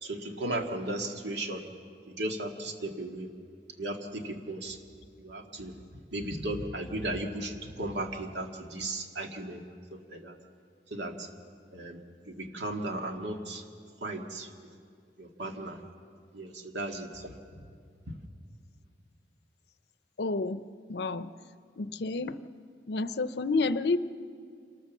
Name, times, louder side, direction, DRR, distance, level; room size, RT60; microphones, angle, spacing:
voice 1, 0.0-1.7 2.1-3.3 3.8-4.8 5.2-5.7 6.1-9.6 9.9-10.4 10.9-11.3 11.7-12.0 12.3-13.6 14.0-14.8 15.2-15.8 16.3-17.7 18.1-18.2, right 1 dB, 80° right, 3 dB, 1.9 m, -36 dB
voice 2, 20.2-20.6 20.9-21.3 21.8-22.4 22.9-24.0, left 3 dB, 70° left, 13 dB, 0.6 m, -29 dB
27.0 x 13.0 x 7.2 m, 2.2 s
head